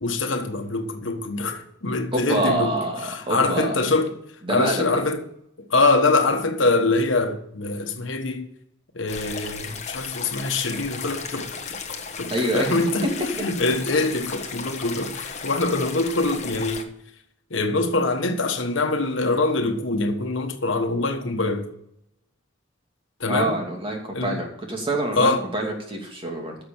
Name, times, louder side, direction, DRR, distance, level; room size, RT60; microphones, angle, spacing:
voice 1, 0.0-4.2 4.5-5.2 5.6-8.5 8.9-16.9 17.5-21.7 23.2-23.6 24.1-24.4 25.1-25.5, left 3 dB, 70° left, 1.3 m, -24 dB
voice 2, 2.1-3.8 4.5-4.9 12.3-12.7 23.3-26.6, right 1 dB, 30° right, 2.7 m, -26 dB
sound 1, 9.1-16.8, left 5 dB, 35° left, 1.2 m, -35 dB
10.5 x 6.8 x 7.1 m
head